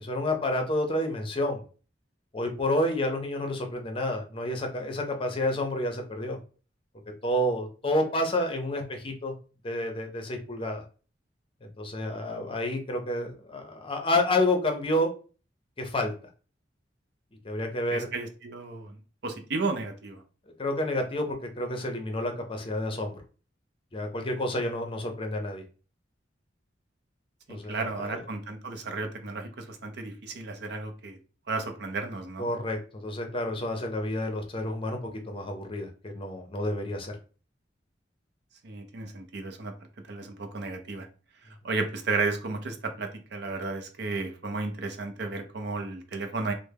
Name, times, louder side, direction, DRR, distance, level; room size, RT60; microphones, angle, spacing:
voice 1, 0.0-1.6 2.3-6.4 7.2-9.3 9.6-10.8 11.8-15.1 15.8-16.1 17.4-18.1 20.6-23.1 23.9-25.6 27.5-28.2 32.4-35.0 35.3-37.1, left 1 dB, 30° left, 4 dB, 0.6 m, -29 dB
voice 2, 17.9-20.2 27.5-31.2 31.5-32.5 38.6-39.7 40.1-41.1 41.6-46.5, right 3 dB, 60° right, 5 dB, 0.6 m, -33 dB
3.3 x 2.1 x 3.3 m, 0.37 s
head